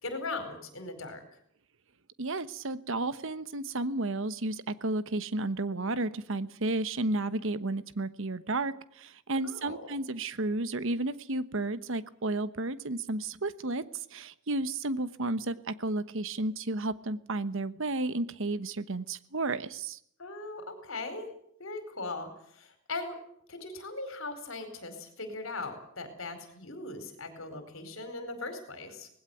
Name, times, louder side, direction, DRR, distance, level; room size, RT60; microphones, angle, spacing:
voice 1, 0.0-1.2 9.4-9.9 20.2-21.3 21.6-23.2 23.5-29.1, left 3 dB, 70° left, 8 dB, 4.6 m, -39 dB
voice 2, 2.2-20.0, right 2 dB, 65° right, 14 dB, 1.1 m, -32 dB
19.5 x 16.5 x 9.2 m, 0.66 s
head